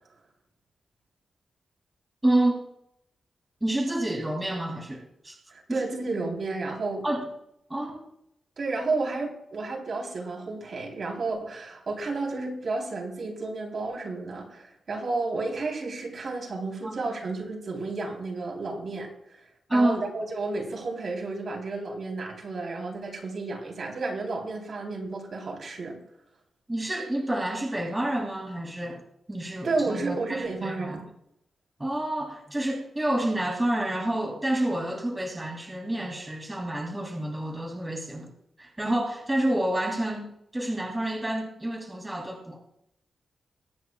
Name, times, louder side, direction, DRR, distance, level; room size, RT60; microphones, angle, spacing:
voice 1, 2.2-2.6 3.6-5.4 5.7-5.8 7.0-7.3 7.7-8.0 16.8-17.0 19.7-20.1 26.7-29.0 29.3-31.1 31.8-38.3 38.6-42.6, right 1 dB, 15° right, 0 dB, 2.9 m, -29 dB
voice 2, 5.5-7.1 8.6-19.4 19.7-26.0 29.6-31.0, right 3 dB, 55° right, 0 dB, 3.8 m, -32 dB
23.0 x 9.8 x 2.4 m, 0.78 s
cardioid pair, 95°, 0 cm